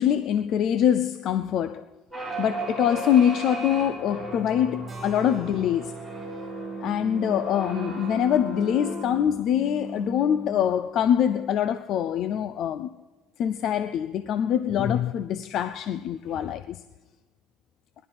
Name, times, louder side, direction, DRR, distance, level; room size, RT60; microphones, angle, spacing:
voice 1, 0.0-1.9 2.4-5.9 6.8-12.9 13.4-16.8, left 9 dB, 50° left, 0.5 m, -24 dB
sound 1, 2.1-10.9, right 2 dB, ahead, 5.0 m, -35 dB
Keyboard (musical), 4.9-9.3, equal, 15° right, 4.3 m, -49 dB
19.0 x 12.0 x 5.9 m
cardioid pair, 145°, 0 cm